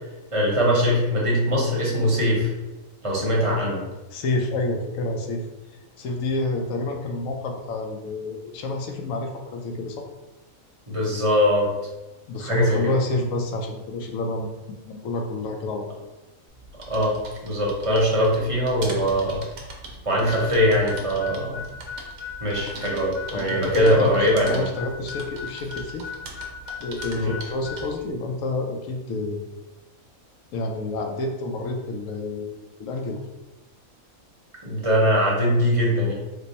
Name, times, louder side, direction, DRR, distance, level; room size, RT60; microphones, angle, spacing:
voice 1, 0.3-2.5 3.0-3.8 10.9-11.7 12.4-12.8 16.9-17.2 17.4-19.4 20.1-21.6 22.4-24.6 27.2-27.3 34.6-36.1, equal, 30° right, -4 dB, 0.7 m, -21 dB
voice 2, 4.1-5.5 6.0-10.0 12.3-14.5 14.8-15.9 23.3-26.1 26.8-29.5 30.5-33.2, left 2 dB, 75° left, 2 dB, 1.0 m, -29 dB
sound 1, 16.5-28.1, right 2 dB, 70° right, 1.0 m, -41 dB
Harmonica, 20.3-27.9, left 7 dB, 60° left, 0.6 m, -36 dB
3.3 x 2.0 x 4.0 m, 1.1 s
omnidirectional pair, 1.5 m